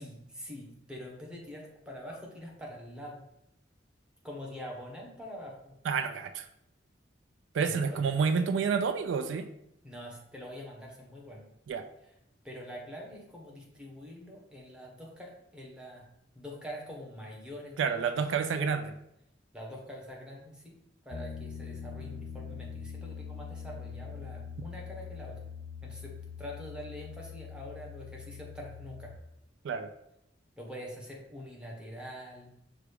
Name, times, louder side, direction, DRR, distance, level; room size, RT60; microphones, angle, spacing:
voice 1, 0.0-3.1 4.2-5.7 7.6-8.0 9.8-11.4 12.4-16.0 16.3-18.2 19.5-20.8 21.0-25.4 25.8-26.1 26.4-29.1 30.6-32.5, equal, 5° right, -3 dB, 0.9 m, -44 dB
voice 2, 5.8-6.5 7.5-9.5 11.7-11.9 17.8-18.9 29.6-29.9, right 5 dB, 80° right, 9 dB, 0.3 m, -29 dB
Piano, 21.1-29.2, left 6 dB, 40° left, 0.3 m, -43 dB
6.0 x 2.3 x 3.3 m, 0.79 s
head